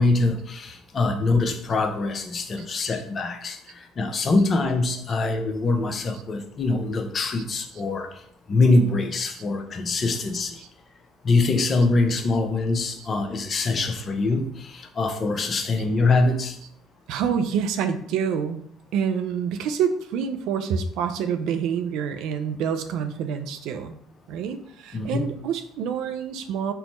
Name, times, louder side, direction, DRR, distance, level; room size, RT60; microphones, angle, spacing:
voice 1, 0.0-3.6 4.0-8.1 8.5-10.6 11.2-16.6 24.9-25.3, left 3 dB, 45° left, 6 dB, 0.6 m, -23 dB
voice 2, 17.1-18.6 18.9-24.0 24.3-26.7, right 7 dB, 70° right, 9 dB, 0.4 m, -27 dB
4.4 x 2.1 x 4.1 m, 0.68 s
hypercardioid pair, 70°, 0 cm